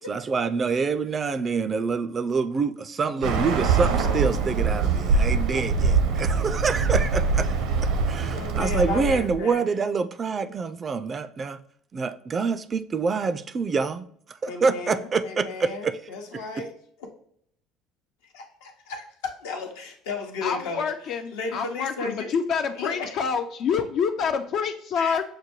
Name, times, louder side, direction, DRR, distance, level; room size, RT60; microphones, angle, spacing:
voice 1, 0.1-7.5 7.8-11.6 11.9-16.0 16.3-16.6, right 4 dB, 35° right, 0.3 m, -26 dB
Bird, 3.2-9.4, right 4 dB, 70° right, 0.7 m, -23 dB
voice 2, 5.3-5.9 8.3-9.6 14.5-16.7 17.0-17.1 18.3-22.3 22.7-23.2 25.0-25.2, left 4 dB, 80° left, 0.8 m, -35 dB
voice 3, 20.4-25.2, left 6 dB, 55° left, 0.3 m, -27 dB
6.6 x 2.2 x 3.0 m
hypercardioid pair, 70°, 0 cm